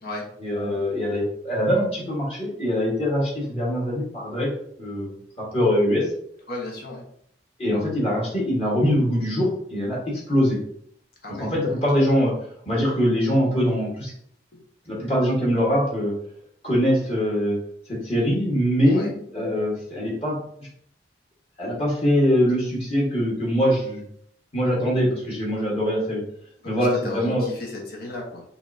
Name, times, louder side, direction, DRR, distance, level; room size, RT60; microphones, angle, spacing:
voice 1, 0.4-4.5 4.8-5.1 5.4-6.1 7.6-10.6 11.4-12.3 12.6-14.1 14.9-16.1 16.6-17.6 17.9-20.4 21.6-24.0 24.5-26.2 26.6-27.4, equal, 35° left, -4 dB, 1.5 m, -23 dB
voice 2, 6.5-7.1 11.2-12.0 18.9-19.1 26.6-28.4, left 1 dB, 60° left, -1 dB, 1.2 m, -35 dB
5.9 x 3.2 x 2.7 m, 0.67 s
head